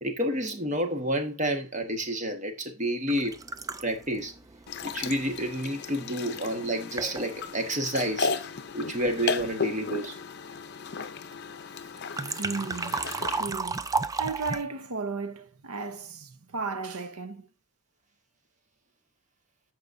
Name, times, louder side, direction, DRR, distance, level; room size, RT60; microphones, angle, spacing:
voice 1, 0.0-3.4 3.8-4.3 4.8-8.3 8.7-10.2, right 1 dB, 35° right, 1.5 m, -29 dB
sound 1, 3.1-5.9 6.6-6.7 7.0-7.5 11.9-14.6, right 4 dB, 15° right, 0.3 m, -33 dB
sound 2, 4.7-13.4, left 4 dB, 50° left, 0.6 m, -35 dB
voice 2, 12.4-13.0 13.3-17.5, right 4 dB, 90° right, 1.0 m, -35 dB
14.0 x 5.0 x 2.7 m
head